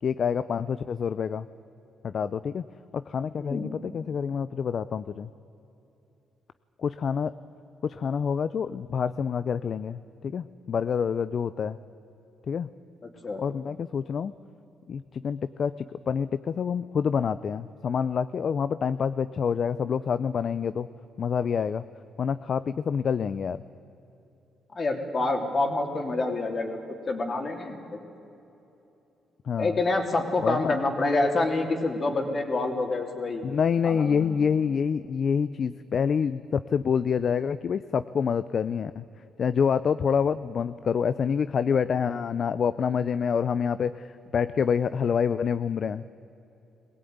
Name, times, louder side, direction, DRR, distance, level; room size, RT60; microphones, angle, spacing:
voice 1, 0.0-1.5 2.0-2.6 2.9-5.3 6.8-7.3 7.8-11.8 12.5-12.7 13.4-14.3 14.9-15.7 16.1-20.9 21.2-21.8 22.2-23.6 29.5-29.8 30.4-30.8 33.4-39.0 39.4-44.0 44.3-46.0, left 7 dB, 50° left, 14 dB, 0.5 m, -27 dB
voice 2, 3.4-3.7 13.0-13.4 24.7-26.8 27.1-28.0 29.6-33.4 33.8-34.5, left 2 dB, 35° left, 4 dB, 3.3 m, -27 dB
21.5 x 17.0 x 9.5 m, 3.0 s
cardioid pair, 90°, 0 cm